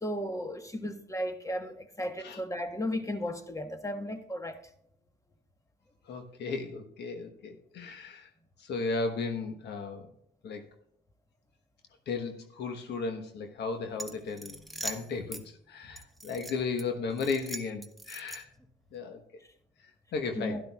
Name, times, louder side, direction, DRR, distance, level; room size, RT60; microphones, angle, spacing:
voice 1, 0.0-4.6 20.4-20.6, equal, 15° left, 1.4 m, -35 dB
voice 2, 6.0-8.3 8.6-10.1 10.4-10.7 12.1-18.5 18.9-19.2 19.8-20.6, left 4 dB, 70° left, 1.2 m, -35 dB
sound 1, 13.9-15.4 16.0-16.8 17.2-18.6, right 1 dB, ahead, 1.1 m, -41 dB
12.0 x 11.5 x 2.4 m
supercardioid pair, 60°, 18 cm